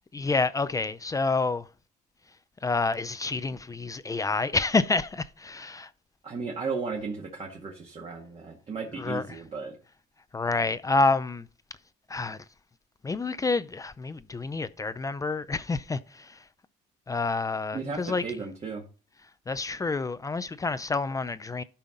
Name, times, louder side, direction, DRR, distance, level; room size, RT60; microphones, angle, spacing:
voice 1, 0.1-1.7 2.6-5.9 9.0-9.4 10.3-11.5 12.1-12.4 13.0-16.4 17.1-18.2 19.5-21.6, left 3 dB, 20° left, 0.5 m, -28 dB
voice 2, 6.2-9.8 17.7-18.8, right 4 dB, 35° right, 2.0 m, -35 dB
13.0 x 5.6 x 3.9 m
cardioid pair, 110°, 17 cm